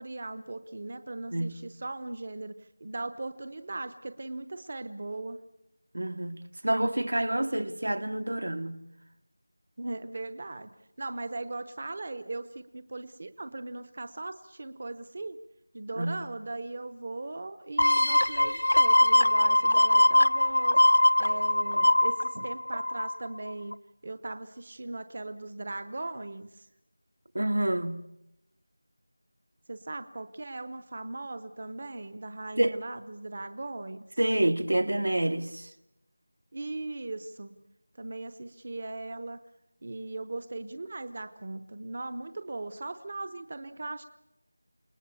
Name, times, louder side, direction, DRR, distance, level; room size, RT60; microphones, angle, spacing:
voice 1, 0.0-5.4 9.8-15.4 15.7-20.8 21.2-23.8 24.0-26.7 29.7-34.1 36.5-37.6 38.0-39.4 39.8-44.0, right 2 dB, 30° right, 0.8 m, -38 dB
voice 2, 5.9-8.8 16.0-16.2 27.4-28.0 32.6-32.8 34.2-35.7, right 1 dB, 75° right, 1.7 m, -28 dB
sound 1, 17.8-23.3 23.7-23.8, left 1 dB, 70° left, 0.8 m, -22 dB
28.5 x 19.5 x 7.0 m
figure-of-eight pair, 180°, 0 cm